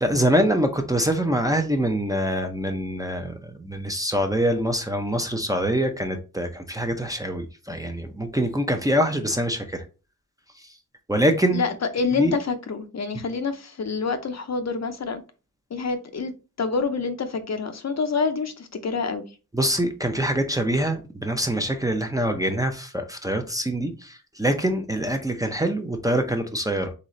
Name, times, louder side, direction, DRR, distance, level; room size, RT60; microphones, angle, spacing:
voice 1, 0.0-9.8 10.6-10.7 11.1-11.6 12.2-12.4 13.1-13.2 19.5-26.9, right 1 dB, 10° right, 0.5 m, -24 dB
voice 2, 11.5-15.2 15.7-16.3 16.6-19.2, left 4 dB, 50° left, 0.6 m, -27 dB
4.0 x 3.7 x 3.1 m
wide cardioid pair, 120°, 34 cm